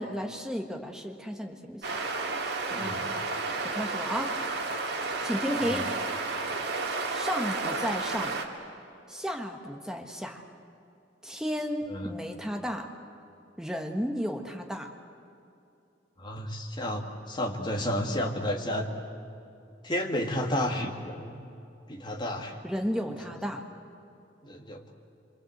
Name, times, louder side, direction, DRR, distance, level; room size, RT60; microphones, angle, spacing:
voice 1, 0.0-1.8 2.7-2.9 3.6-4.3 5.2-5.8 7.1-8.4 9.1-10.4 11.2-12.9 13.6-14.9 22.6-23.6, equal, 5° right, 3 dB, 1.4 m, -33 dB
sound 1, 1.8-8.4, right 3 dB, 60° right, 2.2 m, -32 dB
voice 2, 2.7-3.1 5.6-5.9 11.9-12.1 16.2-18.9 19.8-21.4 21.9-22.6 24.4-24.9, left 1 dB, 25° left, 2 dB, 2.2 m, -32 dB
27.5 x 24.5 x 8.0 m, 2.6 s
head